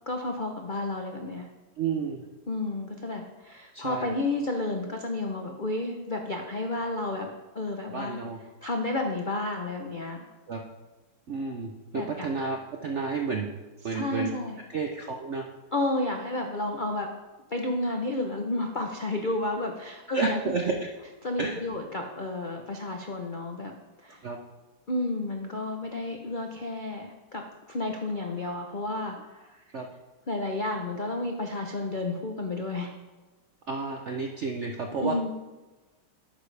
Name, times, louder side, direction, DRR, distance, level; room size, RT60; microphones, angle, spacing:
voice 1, 0.1-1.5 2.5-8.2 8.6-10.2 11.9-12.3 13.8-14.6 15.7-17.1 17.5-20.4 21.2-23.7 24.0-24.2 24.9-29.5 30.3-32.9 35.0-35.3, left 2 dB, 75° left, 2 dB, 0.4 m, -31 dB
voice 2, 1.8-2.3 3.7-4.1 7.9-8.4 10.5-10.6 11.3-13.5 13.8-14.3 14.7-15.5 20.1-20.8 21.4-21.6 24.2-24.4 29.7-29.9 33.7-35.2, right 4 dB, 70° right, 2 dB, 0.6 m, -31 dB
11.5 x 9.0 x 3.4 m, 1.2 s
omnidirectional pair, 2.2 m